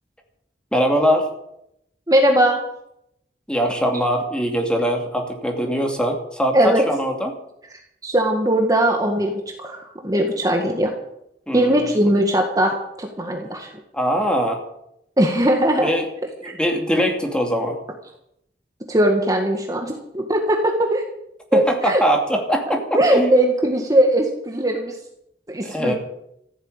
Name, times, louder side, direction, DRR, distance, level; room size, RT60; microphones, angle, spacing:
voice 1, 0.7-1.3 3.5-7.3 11.5-11.9 13.9-14.6 15.8-16.1 16.4-17.8 21.5-23.3 25.6-25.9, equal, 5° left, 2 dB, 2.6 m, -22 dB
voice 2, 2.1-2.6 6.5-6.8 8.0-10.9 11.5-13.7 15.2-15.9 16.4-16.5 18.9-21.0 21.5-22.0 22.7-25.0 25.5-25.9, right 1 dB, 20° right, 2 dB, 1.7 m, -19 dB
15.0 x 9.2 x 8.9 m, 0.77 s
head